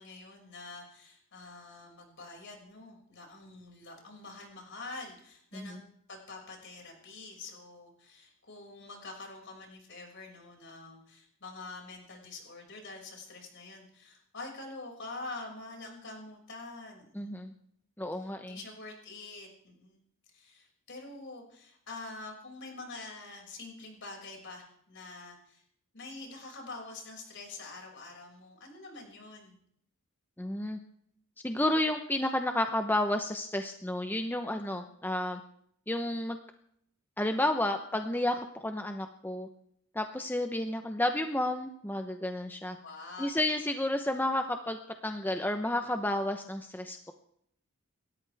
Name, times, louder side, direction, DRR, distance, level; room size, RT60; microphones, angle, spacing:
voice 1, 0.0-5.8 6.1-17.5 18.1-20.0 20.3-25.6 25.9-29.6 42.8-43.3, left 3 dB, 55° left, 1 dB, 6.1 m, -46 dB
voice 2, 17.1-17.5 18.0-18.6 30.4-30.8 31.4-35.4 35.9-36.4 37.2-39.5 39.9-42.8 43.2-47.1, left 1 dB, 10° left, 6 dB, 0.9 m, -31 dB
29.5 x 13.5 x 3.5 m, 0.71 s
head